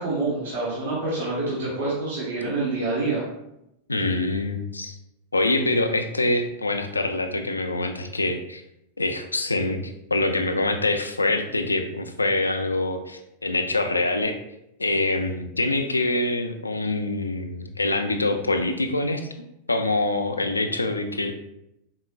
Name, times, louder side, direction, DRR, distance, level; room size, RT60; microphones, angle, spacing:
voice 1, 0.0-3.2, right 2 dB, 60° right, -6 dB, 1.2 m, -27 dB
voice 2, 3.9-4.9 5.3-8.6 9.0-14.4 14.8-19.2 19.7-21.3, left 2 dB, 80° left, 7 dB, 0.4 m, -25 dB
4.8 x 3.6 x 2.3 m, 0.83 s
figure-of-eight pair, 90°, 0 cm